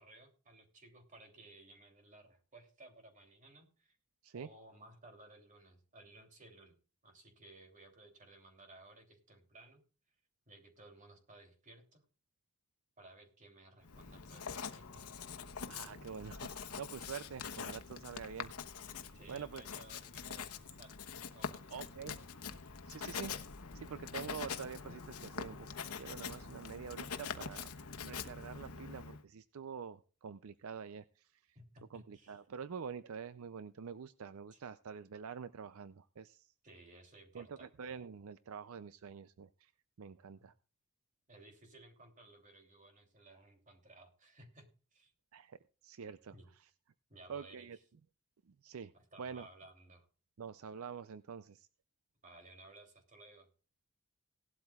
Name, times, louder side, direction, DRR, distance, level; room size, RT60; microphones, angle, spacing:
voice 1, 0.0-4.0 4.3-6.8 7.0-9.8 10.5-12.1 13.0-15.1 19.1-21.8 31.5-32.4 34.5-34.6 36.6-37.7 40.4-40.5 41.3-45.1 46.3-46.5 47.1-47.7 48.9-50.1 52.2-53.5, right 2 dB, 35° right, 4 dB, 3.0 m, -58 dB
Writing, 13.8-29.2, left 6 dB, 85° left, 1.1 m, -45 dB
voice 2, 15.7-19.6 21.7-22.2 22.9-23.3 23.7-31.4 31.9-36.5 37.3-39.7 40.0-40.5 45.3-46.7 47.3-47.8 48.5-48.9 49.2-49.5 50.4-51.7, right 6 dB, 70° right, 14 dB, 0.5 m, -47 dB
17.5 x 12.0 x 2.4 m, 0.37 s
head